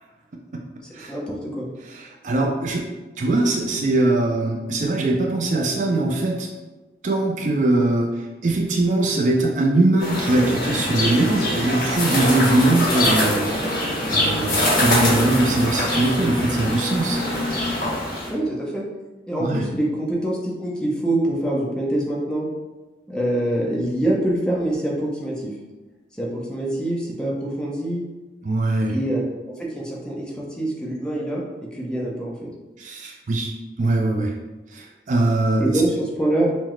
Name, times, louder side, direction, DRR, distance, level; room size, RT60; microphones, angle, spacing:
voice 1, 1.1-1.7 18.3-18.8 19.3-22.5 23.1-25.5 26.2-28.0 28.9-31.4 31.7-32.5 35.6-36.5, right 1 dB, 5° left, -4 dB, 0.6 m, -25 dB
voice 2, 1.9-2.8 3.2-6.5 7.0-8.1 8.4-17.2 19.4-19.6 28.4-28.9 32.8-33.5 33.8-34.3 34.7-35.6, right 2 dB, 45° right, 0 dB, 0.4 m, -21 dB
sound 1, 10.0-18.3, left 1 dB, 50° left, 1.2 m, -23 dB
5.7 x 2.0 x 3.1 m, 1.2 s
head